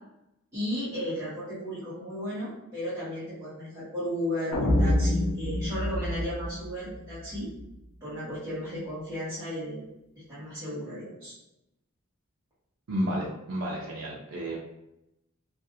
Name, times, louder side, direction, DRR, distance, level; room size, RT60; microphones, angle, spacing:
voice 1, 0.5-7.5 8.0-9.9 10.3-11.3, equal, 15° right, -13 dB, 1.0 m, -34 dB
sound 1, 4.5-7.6, left 1 dB, 65° left, 0.5 m, -27 dB
voice 2, 12.9-14.6, equal, 70° right, -4 dB, 0.5 m, -31 dB
2.5 x 2.3 x 2.6 m, 0.88 s
head